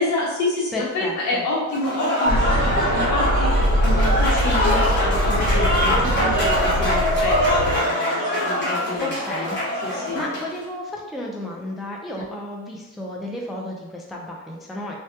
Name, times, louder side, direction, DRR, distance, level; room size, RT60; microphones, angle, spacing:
voice 1, 0.0-9.5 9.8-10.2, left 2 dB, 70° left, -4 dB, 0.8 m, -28 dB
voice 2, 0.7-1.4 9.0-9.6 9.9-14.9, left 1 dB, ahead, -1 dB, 0.3 m, -32 dB
Applause / Crowd, 1.7-10.5, equal, 40° left, 0.9 m, -23 dB
sound 1, 2.3-7.8, equal, 40° right, 0.9 m, -22 dB
2.2 x 2.1 x 2.8 m, 1.0 s
cardioid pair, 90°, 30 cm